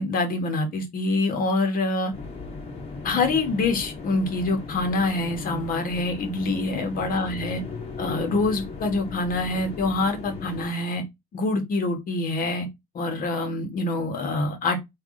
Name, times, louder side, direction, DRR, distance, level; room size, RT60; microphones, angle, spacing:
voice 1, 0.0-2.1 3.0-7.6 8.0-11.0 11.3-12.7 12.9-14.9, left 2 dB, 55° left, 1.2 m, -25 dB
sound 1, 2.1-10.7, left 4 dB, 35° left, 1.9 m, -37 dB
3.5 x 2.4 x 3.6 m
cardioid pair, 110°, 17 cm